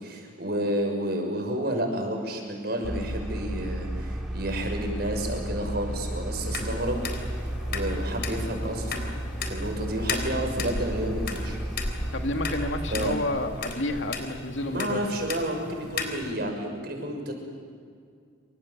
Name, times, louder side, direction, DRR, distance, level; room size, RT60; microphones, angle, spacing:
voice 1, 0.0-7.1 7.4-9.0 9.4-11.6 12.9-13.1 14.7-17.3, right 1 dB, 55° right, 2 dB, 6.6 m, -30 dB
sound 1, 2.8-13.2, right 1 dB, 5° right, 3.3 m, -33 dB
sound 2, 6.4-16.3, left 3 dB, 55° left, 3.9 m, -36 dB
voice 2, 12.1-15.0, left 2 dB, 75° left, 4 dB, 2.5 m, -30 dB
28.0 x 26.5 x 7.5 m, 2.2 s
head